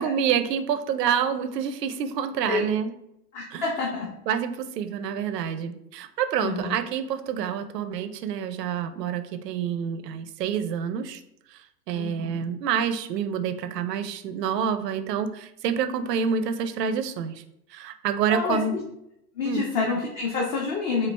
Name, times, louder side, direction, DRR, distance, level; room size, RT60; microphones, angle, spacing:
voice 1, 0.0-2.9 3.5-3.7 4.3-11.2 11.5-17.4 17.7-18.7 19.4-19.6, right 7 dB, 85° right, 10 dB, 0.6 m, -27 dB
voice 2, 3.3-4.1 5.1-5.2 6.4-6.8 11.9-12.5 18.3-18.8 19.4-21.1, left 4 dB, 40° left, -1 dB, 0.8 m, -28 dB
4.5 x 2.4 x 3.2 m, 0.80 s
hypercardioid pair, 115°, 47 cm